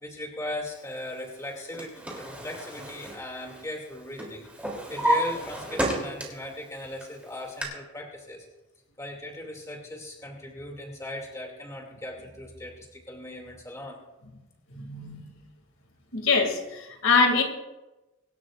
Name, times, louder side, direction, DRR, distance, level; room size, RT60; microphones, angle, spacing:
voice 1, 0.0-8.4 9.0-14.0, left 1 dB, 15° left, 0 dB, 2.6 m, -38 dB
Drawer open or close, 1.4-3.9 4.2-6.5 7.0-7.6, right 1 dB, 5° right, 3.2 m, -31 dB
voice 2, 14.7-15.3 16.1-17.4, left 4 dB, 80° left, 3 dB, 2.6 m, -24 dB
25.0 x 12.5 x 2.6 m, 1.0 s
head